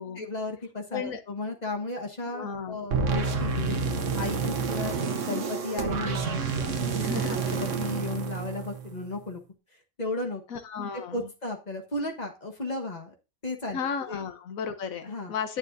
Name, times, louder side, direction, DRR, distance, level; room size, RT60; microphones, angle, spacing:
voice 1, 0.2-3.8 4.2-9.4 10.0-10.4 10.9-13.1 13.4-14.2 15.0-15.3, left 2 dB, 30° left, 2 dB, 1.4 m, -35 dB
voice 2, 2.2-2.8 7.0-7.4 10.5-11.3 13.7-15.6, left 6 dB, 85° left, 8 dB, 1.4 m, -34 dB
sound 1, 2.9-9.1, right 5 dB, 65° right, 1.3 m, -29 dB
9.8 x 9.0 x 2.6 m, 0.29 s
omnidirectional pair, 1.4 m